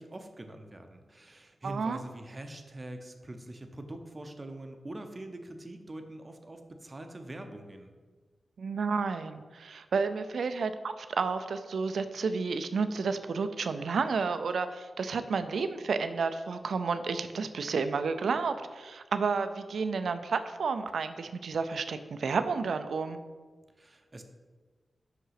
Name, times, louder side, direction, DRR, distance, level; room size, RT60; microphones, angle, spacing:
voice 1, 0.0-7.9 23.8-24.2, right 1 dB, 25° right, 6 dB, 0.7 m, -44 dB
voice 2, 1.6-2.0 8.6-23.2, right 5 dB, 80° right, 10 dB, 0.5 m, -31 dB
5.9 x 5.6 x 5.8 m, 1.4 s
wide cardioid pair, 130°, 0 cm